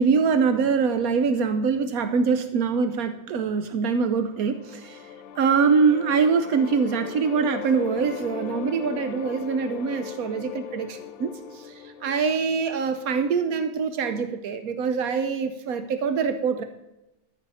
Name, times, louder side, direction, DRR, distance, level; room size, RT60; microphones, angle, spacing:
voice 1, 0.0-5.0 5.4-16.6, right 5 dB, 85° right, 9 dB, 1.2 m, -24 dB
sound 1, 4.1-13.2, left 9 dB, 80° left, 1.1 m, -39 dB
13.5 x 6.6 x 4.9 m, 0.91 s
omnidirectional pair, 1.5 m